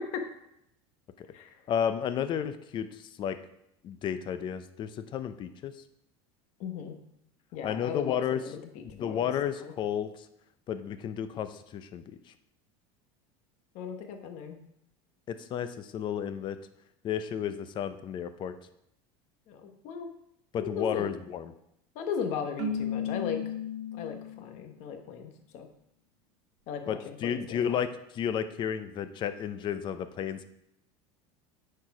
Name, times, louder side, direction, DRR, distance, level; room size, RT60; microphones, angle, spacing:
voice 1, 1.7-3.4 3.8-5.7 7.6-8.4 8.9-10.1 10.7-12.2 15.3-16.6 17.0-18.5 20.5-21.5 26.9-30.4, left 9 dB, 35° left, 11 dB, 0.6 m, -32 dB
voice 2, 6.6-7.0 7.5-8.7 9.0-9.3 9.6-9.7 13.7-14.6 19.5-20.1 20.6-21.1 21.9-23.5 23.9-25.7 26.7-27.8, left 7 dB, 60° left, 5 dB, 1.3 m, -37 dB
Keyboard (musical), 22.6-24.6, left 5 dB, 85° right, 1.3 m, -34 dB
9.0 x 4.6 x 4.8 m, 0.80 s
supercardioid pair, 135°, 14 cm